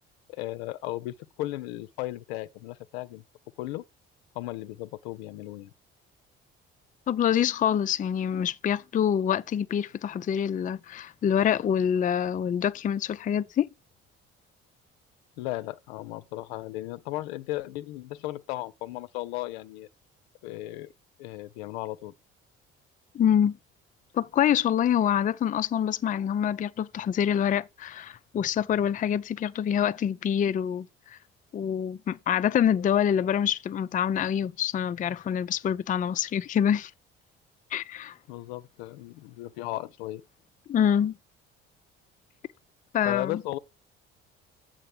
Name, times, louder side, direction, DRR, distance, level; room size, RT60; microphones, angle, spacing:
voice 1, 0.3-3.2 3.6-3.8 4.4-5.7 15.4-19.9 20.4-20.9 21.2-22.1 38.3-40.2 43.1-43.6, left 17 dB, 70° left, 0.6 m, -35 dB
voice 2, 7.1-13.7 23.1-23.6 24.1-31.2 31.5-36.9 37.7-38.2 40.7-41.2 42.9-43.4, left 9 dB, 25° left, 0.4 m, -26 dB
7.7 x 3.6 x 6.5 m
hypercardioid pair, 50°, 33 cm